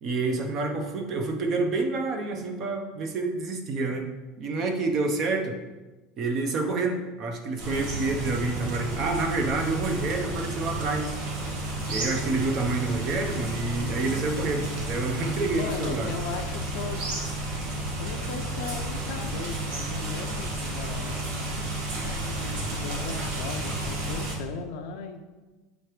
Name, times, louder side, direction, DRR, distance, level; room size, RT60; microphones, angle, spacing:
voice 1, 0.0-4.1 4.4-5.6 6.2-11.1 11.9-16.1, right 3 dB, 30° right, 3 dB, 0.7 m, -28 dB
sound 1, 7.6-24.3, right 1 dB, 55° right, 1.8 m, -32 dB
voice 2, 14.3-14.7 15.5-17.1 18.0-21.3 22.0-25.3, left 5 dB, 55° left, 3 dB, 0.6 m, -37 dB
7.8 x 3.0 x 4.9 m, 1.2 s
supercardioid pair, 180°, 0 cm